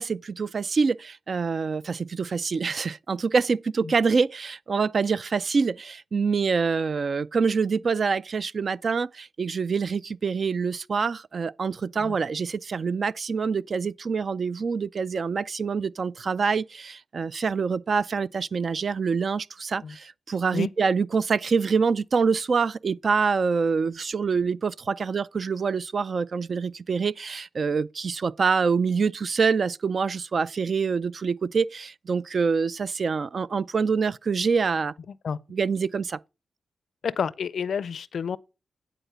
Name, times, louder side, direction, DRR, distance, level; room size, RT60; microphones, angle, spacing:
voice 1, 0.0-34.9 35.5-36.2, right 5 dB, 55° right, 0.4 m, -26 dB
voice 2, 37.0-38.4, left 7 dB, 70° left, 0.4 m, -29 dB
9.9 x 4.1 x 6.7 m
cardioid pair, 60°, 0 cm